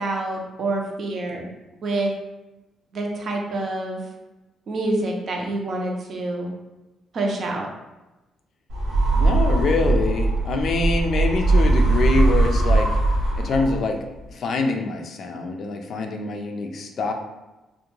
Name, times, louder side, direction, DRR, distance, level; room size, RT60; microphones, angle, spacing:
voice 1, 0.0-1.5 1.8-2.1 2.9-4.0 4.7-6.5 7.1-7.7, right 2 dB, 55° right, 0 dB, 0.5 m, -27 dB
sound 1, 8.7-14.0, right 2 dB, 90° right, 0.7 m, -20 dB
voice 2, 9.1-12.9 13.4-14.0 14.3-17.1, left 3 dB, 60° left, 3 dB, 0.4 m, -25 dB
2.4 x 2.1 x 3.0 m, 1.0 s
cardioid pair, 90°, 0 cm